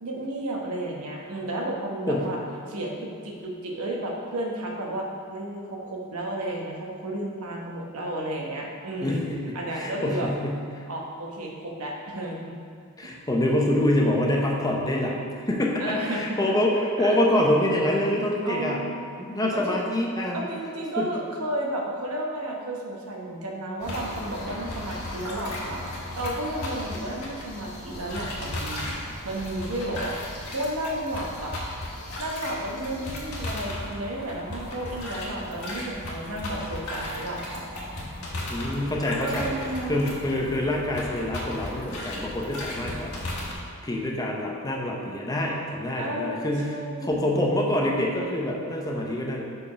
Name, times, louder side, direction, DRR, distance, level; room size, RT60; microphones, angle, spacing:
voice 1, 0.0-2.4 2.7-9.2 9.5-10.3 10.9-12.6 13.0-13.1 15.8-16.6 17.0-17.2 18.4-19.1 19.5-19.8 20.3-29.0 29.2-30.2 30.5-31.6 32.2-37.7 39.2-40.0 46.0-47.3, right 1 dB, 70° right, -1 dB, 1.0 m, -32 dB
voice 2, 9.0-10.8 13.0-18.8 19.2-20.4 21.0-21.1 38.5-39.5 39.9-43.1 43.8-49.4, left 1 dB, 15° left, -2 dB, 0.7 m, -26 dB
sound 1, 23.8-43.5, left 1 dB, 70° left, 1.4 m, -35 dB
5.0 x 4.8 x 5.6 m, 2.2 s
head